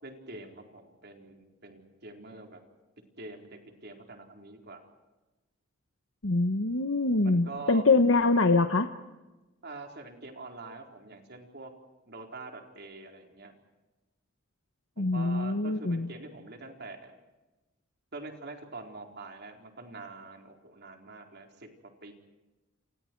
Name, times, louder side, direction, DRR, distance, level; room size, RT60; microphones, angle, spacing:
voice 1, 0.0-2.6 3.2-4.8 7.2-7.8 9.6-11.7 12.1-13.6 15.0-17.2 18.1-22.1, right 3 dB, 55° right, 3 dB, 4.3 m, -45 dB
voice 2, 6.2-8.9 15.0-16.1, left 3 dB, 70° left, 7 dB, 1.1 m, -24 dB
29.5 x 29.0 x 4.7 m, 1.1 s
head